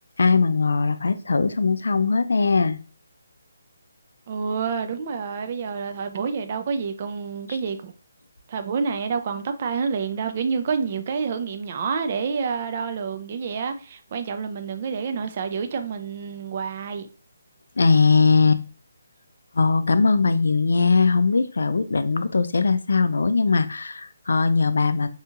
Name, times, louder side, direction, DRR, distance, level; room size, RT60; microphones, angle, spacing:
voice 1, 0.2-2.8 17.8-18.6 19.5-25.1, left 4 dB, 75° left, 0.3 m, -20 dB
voice 2, 4.3-7.9 8.5-17.1, right 5 dB, 35° right, 0.3 m, -28 dB
2.7 x 2.3 x 2.8 m
hypercardioid pair, 165°, 0 cm